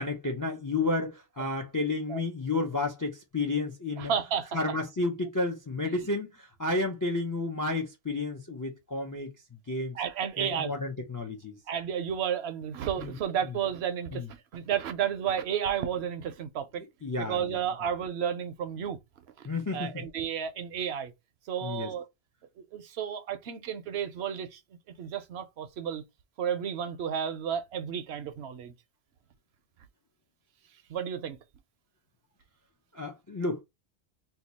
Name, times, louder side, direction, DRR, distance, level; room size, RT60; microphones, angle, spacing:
voice 1, 0.0-4.1 4.5-10.0 10.4-11.6 13.0-13.1 14.1-14.3 17.0-17.6 19.4-20.0 21.6-21.9 32.9-33.6, left 2 dB, 30° left, 0.3 m, -31 dB
voice 2, 4.0-4.6 9.9-10.7 11.7-14.2 14.5-16.8 17.2-19.0 19.7-21.1 21.5-22.0 22.7-24.6 25.0-26.0 26.4-28.7 30.9-31.4, right 8 dB, 70° right, 0.8 m, -32 dB
2.7 x 2.3 x 4.1 m
omnidirectional pair, 1.2 m